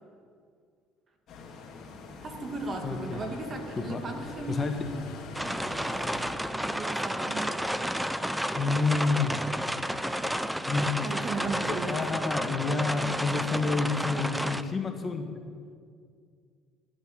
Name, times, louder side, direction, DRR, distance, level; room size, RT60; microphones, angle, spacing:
sound 1, 1.3-6.3, left 3 dB, 50° left, 2.5 m, -44 dB
voice 1, 2.2-5.1 5.4-5.9 6.5-8.1 11.0-11.9, right 3 dB, 35° right, 4 dB, 2.1 m, -37 dB
voice 2, 2.8-3.2 3.8-4.0 4.5-4.9 8.5-9.4 10.7-11.1 11.7-15.3, left 4 dB, 30° left, 5 dB, 1.3 m, -29 dB
sound 2, 5.3-14.6, equal, 5° right, 0.5 m, -31 dB
12.0 x 9.3 x 8.8 m, 2.2 s
cardioid pair, 110°, 0 cm